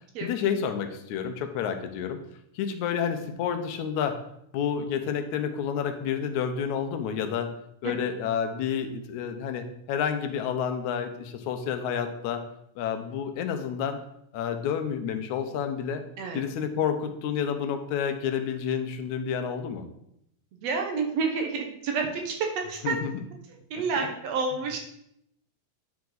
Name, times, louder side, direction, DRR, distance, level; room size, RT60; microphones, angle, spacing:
voice 1, 0.2-2.2 2.6-4.2 4.5-7.5 7.8-12.4 12.8-14.0 14.3-16.0 16.3-19.9 22.8-23.1, left 7 dB, 90° left, 7 dB, 2.1 m, -29 dB
voice 2, 20.6-23.0 23.7-24.8, right 4 dB, 65° right, 2 dB, 2.0 m, -29 dB
9.3 x 4.8 x 3.9 m, 0.76 s
omnidirectional pair, 3.3 m